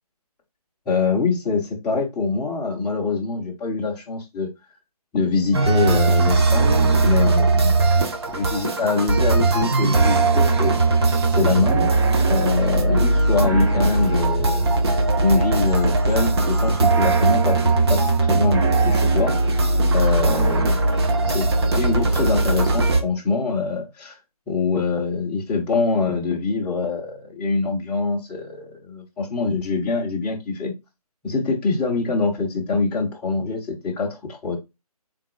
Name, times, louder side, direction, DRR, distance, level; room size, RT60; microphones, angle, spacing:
voice 1, 0.9-4.5 5.1-7.8 8.3-11.1 11.4-14.7 15.2-19.6 19.9-20.8 21.3-24.2 24.5-30.7 31.2-34.6, left 4 dB, 5° left, 0.5 m, -24 dB
sound 1, 5.5-23.0, right 3 dB, 40° right, 0.8 m, -19 dB
3.9 x 3.7 x 2.5 m
figure-of-eight pair, 150°, 20 cm